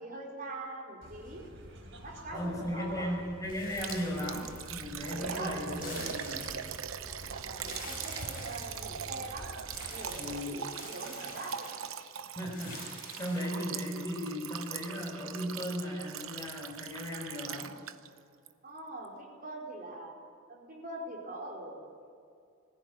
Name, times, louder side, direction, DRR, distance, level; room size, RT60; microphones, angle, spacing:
voice 1, 0.0-1.4 2.0-3.1 5.1-6.1 7.3-9.5 9.8-11.7 18.6-20.1 20.5-21.9, right 2 dB, 45° right, -1 dB, 4.7 m, -43 dB
sound 1, 1.0-10.4, equal, 65° right, 4.0 m, -48 dB
voice 2, 2.3-6.6 10.1-10.6 12.4-17.7, equal, 15° left, -1 dB, 5.7 m, -36 dB
sound 2, 3.5-5.0 5.6-7.0 7.5-9.2 9.7-12.0 12.5-13.7, left 3 dB, 45° left, 6.6 m, -48 dB
Liquid, 3.8-18.2 18.5-18.6 19.0-19.1, right 8 dB, 80° right, 0.9 m, -41 dB
21.0 x 15.5 x 9.5 m, 2.4 s
head